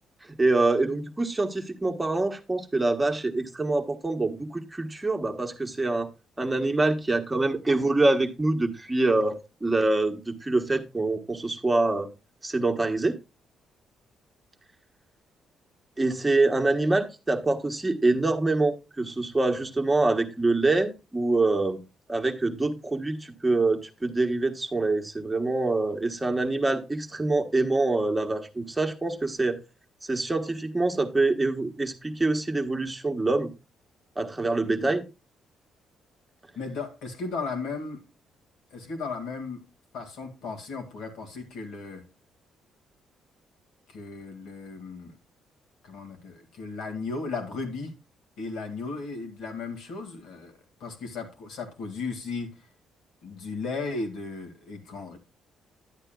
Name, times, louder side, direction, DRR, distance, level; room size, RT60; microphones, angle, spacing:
voice 1, 0.3-6.1 6.4-12.1 12.4-13.2 16.0-21.8 22.1-29.6 30.1-33.5 34.2-35.0, right 2 dB, 15° right, 1.2 m, -25 dB
voice 2, 36.6-38.0 38.7-39.6 39.9-42.0 43.9-45.1 45.8-47.9 48.4-52.5 53.2-55.2, left 4 dB, 80° left, 2.1 m, -35 dB
11.5 x 8.8 x 2.3 m
cardioid pair, 90°, 0 cm